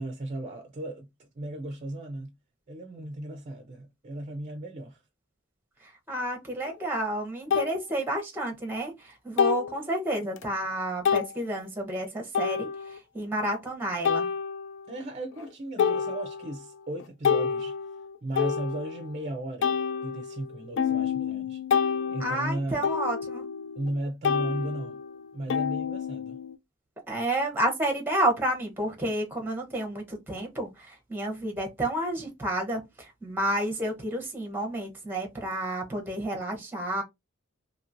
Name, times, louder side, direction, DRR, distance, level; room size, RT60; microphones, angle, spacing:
voice 1, 0.0-2.3 2.7-5.0 14.9-17.8 18.2-19.8 20.0-21.6 22.1-22.9 23.8-25.0 25.3-26.4, right 1 dB, 35° right, 0.5 m, -36 dB
voice 2, 5.8-14.3 22.2-23.4 27.1-37.0, right 1 dB, 10° right, 0.8 m, -30 dB
sound 1, 6.7-6.8 7.5-7.7 9.4-9.8 10.4-10.5 11.1-11.3 12.3-13.0 14.1-14.9 15.4-15.5 15.8-16.6 17.0-19.2 19.6-24.0 24.2-26.5, left 6 dB, 60° left, 0.4 m, -28 dB
2.9 x 2.8 x 2.5 m
head